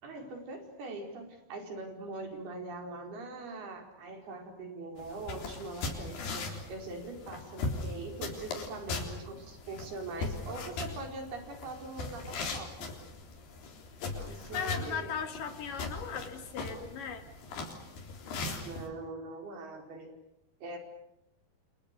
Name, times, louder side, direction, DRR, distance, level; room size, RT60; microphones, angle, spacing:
voice 1, 0.0-12.9 14.1-15.1 18.6-20.1 20.6-20.8, right 2 dB, 75° right, 4 dB, 6.6 m, -42 dB
sound 1, 5.0-18.9, left 3 dB, 80° left, 5.9 m, -39 dB
voice 2, 14.3-17.3, left 7 dB, 60° left, 7 dB, 3.6 m, -38 dB
29.5 x 27.5 x 6.8 m, 0.82 s
omnidirectional pair, 4.5 m